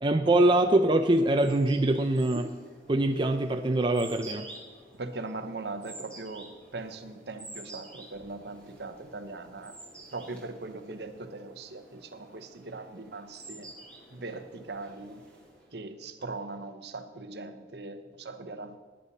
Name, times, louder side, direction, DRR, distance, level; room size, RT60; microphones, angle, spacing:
voice 1, 0.0-2.5 2.9-4.5, right 1 dB, 25° right, 5 dB, 0.5 m, -24 dB
sound 1, 0.8-15.8, right 2 dB, 5° left, 4.2 m, -50 dB
voice 2, 4.9-9.8 10.1-13.7 14.1-15.2 15.7-18.8, right 3 dB, 60° right, 8 dB, 1.0 m, -40 dB
18.5 x 9.8 x 4.2 m, 1.5 s
head